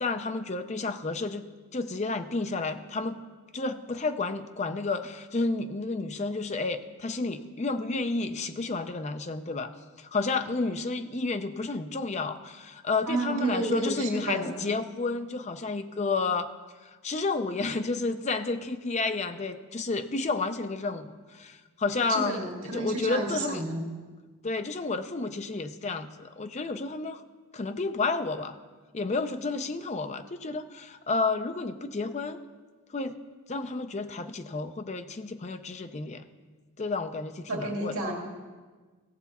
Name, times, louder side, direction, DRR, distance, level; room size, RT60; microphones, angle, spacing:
voice 1, 0.0-1.5 1.7-3.2 3.5-9.7 10.0-16.5 16.8-23.6 24.4-27.2 27.5-28.6 28.9-32.4 32.9-33.2 33.5-36.2 36.8-38.0, left 3 dB, 30° left, 9 dB, 0.5 m, -31 dB
voice 2, 13.1-14.5 22.1-23.8 37.5-38.1, right 2 dB, 70° right, 0 dB, 2.0 m, -31 dB
17.0 x 6.9 x 4.1 m, 1.4 s
head